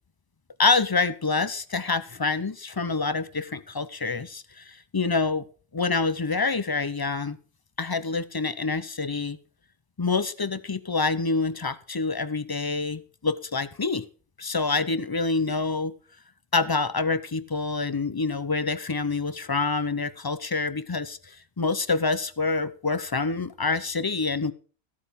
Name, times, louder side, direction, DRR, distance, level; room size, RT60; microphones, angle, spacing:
voice 1, 0.6-5.5 5.7-7.4 7.8-9.4 10.0-14.0 14.4-15.9 16.5-24.5, left 4 dB, 25° left, 15 dB, 0.5 m, -27 dB
14.0 x 8.7 x 5.1 m, 0.39 s
omnidirectional pair, 1.1 m